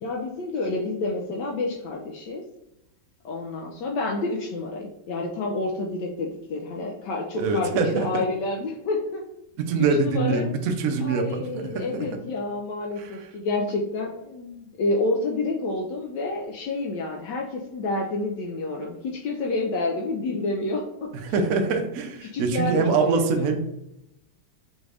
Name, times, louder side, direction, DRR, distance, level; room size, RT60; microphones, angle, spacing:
voice 1, 0.0-2.4 3.2-9.2 9.8-10.5 11.0-21.1 22.3-23.5, left 2 dB, 75° left, -1 dB, 1.1 m, -29 dB
voice 2, 7.3-8.2 9.6-12.1 13.0-13.3 21.1-23.6, right 4 dB, 85° right, 4 dB, 0.7 m, -24 dB
5.1 x 2.4 x 3.3 m, 0.87 s
omnidirectional pair, 2.1 m